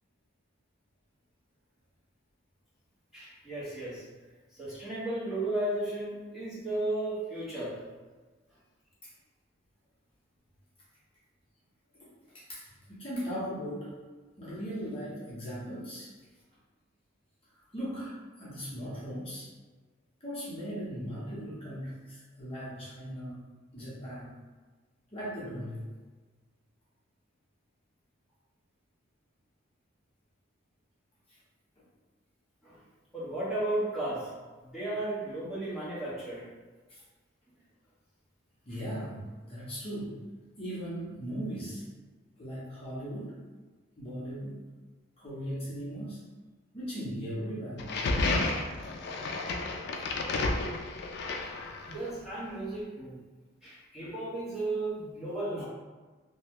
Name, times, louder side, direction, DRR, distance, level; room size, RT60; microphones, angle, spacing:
voice 1, 3.1-4.0 4.5-7.8 32.6-32.8 33.1-34.3 34.6-36.5 51.9-53.2 53.6-55.6, right 1 dB, ahead, -11 dB, 1.0 m, -34 dB
voice 2, 12.3-13.9 14.4-16.1 17.7-19.5 20.2-23.4 23.7-24.3 25.1-25.9 36.9-37.0 38.6-40.2 40.6-41.8 42.4-43.4 44.0-44.6 45.2-46.2 46.7-47.9, equal, 30° left, -9 dB, 0.9 m, -38 dB
sound 1, 47.8-52.1, left 2 dB, 55° left, 0.4 m, -31 dB
2.8 x 2.2 x 3.5 m, 1.3 s
head